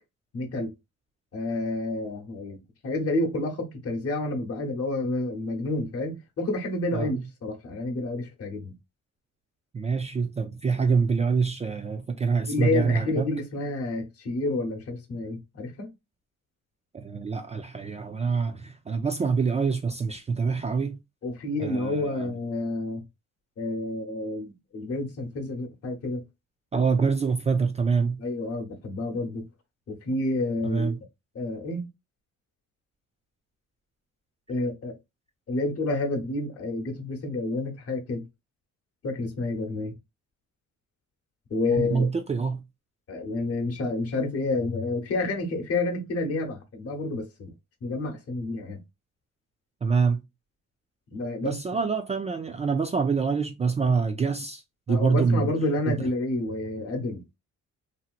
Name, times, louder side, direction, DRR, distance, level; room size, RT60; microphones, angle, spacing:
voice 1, 0.3-0.7 1.3-2.6 2.8-8.7 12.5-15.9 21.2-23.0 23.6-26.2 28.2-29.4 29.9-31.0 31.3-31.9 34.5-35.0 35.5-38.2 39.0-39.9 41.5-42.1 43.1-47.5 47.8-48.8 51.1-51.5 54.9-57.2, left 2 dB, 50° left, 1.1 m, -29 dB
voice 2, 9.7-13.3 16.9-21.0 21.6-22.3 26.7-28.2 30.6-31.0 41.7-42.6 49.8-50.2 51.4-54.6 54.9-55.5 55.9-56.0, right 5 dB, 25° right, 0.3 m, -25 dB
2.8 x 2.8 x 2.4 m
cardioid pair, 90°, 30 cm